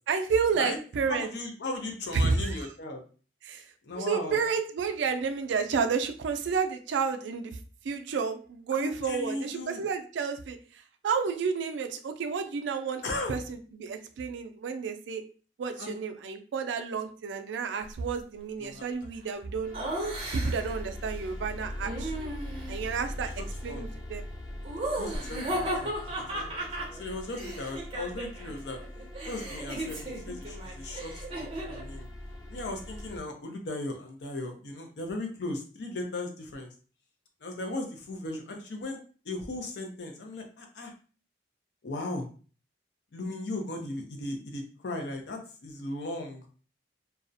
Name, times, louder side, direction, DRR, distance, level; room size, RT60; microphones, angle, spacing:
voice 1, 0.1-1.3 2.1-2.6 3.4-3.6 3.9-7.6 7.8-13.0 13.3-15.2 15.6-19.7 20.3-22.3 22.7-23.3 23.6-24.2, right 5 dB, 85° right, 7 dB, 0.3 m, -31 dB
voice 2, 1.1-3.0 3.8-4.4 8.7-9.9 13.0-13.4 15.8-16.0 18.6-18.8 23.7-23.9 25.0-26.7 26.9-28.8 29.3-32.1 32.5-36.7 37.4-39.0 39.2-40.9 41.8-42.3 43.1-46.5, left 2 dB, 70° left, 3 dB, 0.5 m, -37 dB
sound 1, 19.5-33.2, left 1 dB, 20° left, 0.5 m, -41 dB
Laughter, 19.7-20.8 21.8-22.8 24.6-28.5 28.8-31.9, right 1 dB, 30° right, 0.6 m, -35 dB
2.3 x 2.0 x 2.6 m, 0.39 s
head